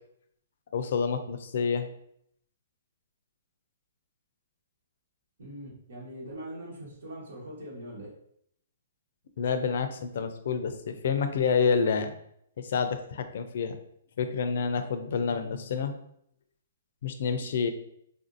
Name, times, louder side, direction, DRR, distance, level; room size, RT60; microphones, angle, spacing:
voice 1, 0.7-1.9 9.4-12.1 12.6-13.8 14.2-15.9 17.0-17.7, left 6 dB, 60° left, 9 dB, 0.4 m, -28 dB
voice 2, 5.4-8.1, right 1 dB, 85° right, -6 dB, 1.3 m, -42 dB
3.5 x 2.5 x 2.6 m, 0.71 s
hypercardioid pair, 160°, 0 cm